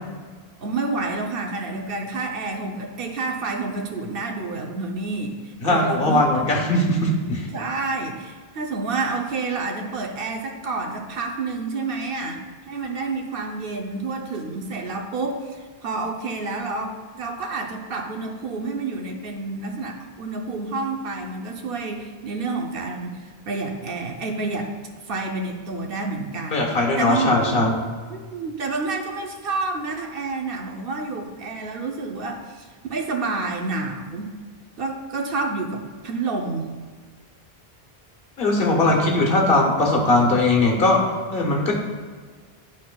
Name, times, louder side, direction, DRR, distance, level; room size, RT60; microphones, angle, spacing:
voice 1, 0.6-6.5 6.9-7.0 7.5-24.7 25.1-26.7 27.0-27.7 28.1-34.3 34.8-36.7, right 3 dB, 65° right, 2 dB, 0.9 m, -29 dB
voice 2, 5.6-7.5 26.5-27.7 38.4-41.0 41.3-41.7, left 2 dB, 65° left, 0 dB, 1.3 m, -19 dB
11.5 x 4.2 x 2.3 m, 1.5 s
omnidirectional pair, 1.0 m